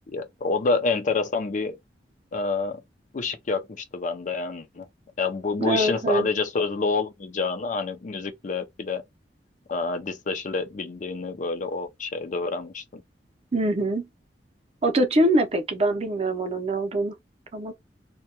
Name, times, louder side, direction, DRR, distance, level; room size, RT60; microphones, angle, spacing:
voice 1, 0.1-1.8 2.3-2.8 3.1-4.9 5.2-9.0 9.7-13.0, left 4 dB, 45° left, 0.4 m, -28 dB
voice 2, 5.6-6.3 13.5-14.1 14.8-17.2 17.5-17.7, right 1 dB, 35° right, 0.5 m, -23 dB
2.2 x 2.2 x 2.8 m
head